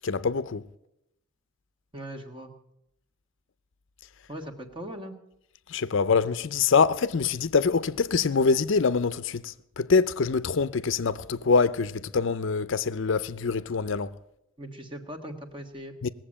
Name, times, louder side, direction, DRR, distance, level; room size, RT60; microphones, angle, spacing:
voice 1, 0.0-0.6 5.7-14.1 16.0-16.1, left 5 dB, 60° left, 0.5 m, -24 dB
voice 2, 1.9-2.5 4.3-5.2 14.6-15.9, right 1 dB, 20° right, 1.4 m, -39 dB
19.0 x 7.6 x 8.7 m
head